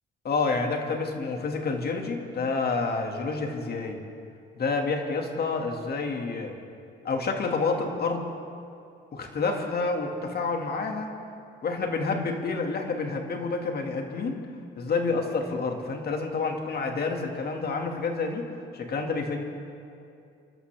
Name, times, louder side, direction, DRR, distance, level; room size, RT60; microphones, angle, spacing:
voice 1, 0.2-4.0 4.6-6.6 7.0-8.3 9.1-11.1 11.6-14.4 14.8-18.5 18.7-19.4, left 4 dB, 50° left, 3 dB, 2.0 m, -28 dB
27.5 x 12.5 x 3.4 m, 2.6 s
cardioid pair, 90°, 20 cm